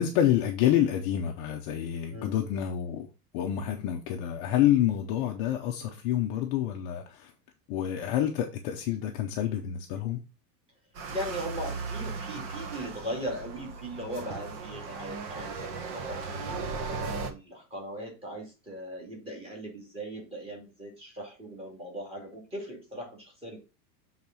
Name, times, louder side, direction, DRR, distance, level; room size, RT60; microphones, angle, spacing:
voice 1, 0.0-3.1 3.3-7.3 7.7-10.2, left 11 dB, 30° left, 0.8 m, -28 dB
sound 1, 11.0-17.3, right 4 dB, 35° right, 1.2 m, -37 dB
voice 2, 11.1-23.6, equal, 10° right, 2.6 m, -39 dB
7.2 x 4.0 x 6.1 m
supercardioid pair, 170°, 48 cm